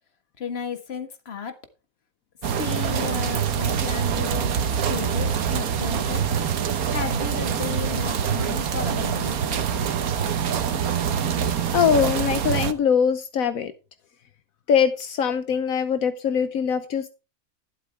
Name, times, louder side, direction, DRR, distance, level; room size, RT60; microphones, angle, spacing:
voice 1, 0.4-1.6 2.5-4.5 4.9-6.3 6.9-9.9, left 6 dB, 45° left, 8 dB, 1.7 m, -34 dB
sound 1, 2.4-12.7, right 8 dB, 90° right, 1.5 m, -25 dB
voice 2, 11.7-13.7 14.7-17.1, left 7 dB, 75° left, 10 dB, 1.3 m, -22 dB
12.0 x 11.5 x 3.5 m, 0.31 s
omnidirectional pair, 1.5 m